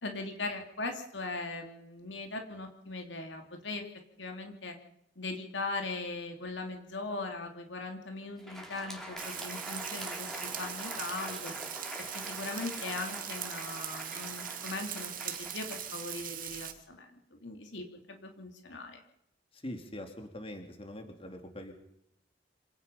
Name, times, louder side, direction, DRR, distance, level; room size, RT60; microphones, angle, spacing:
voice 1, 0.0-3.8 4.2-4.8 5.2-11.5 12.1-19.0, left 3 dB, 75° left, 4 dB, 3.1 m, -39 dB
Crowd, 8.3-16.7, equal, ahead, 4.2 m, -44 dB
Frying (food), 9.2-16.7, right 10 dB, 45° right, 2.2 m, -40 dB
voice 2, 19.5-21.7, left 1 dB, 30° left, 4 dB, 3.6 m, -43 dB
27.0 x 17.5 x 5.7 m, 0.77 s
head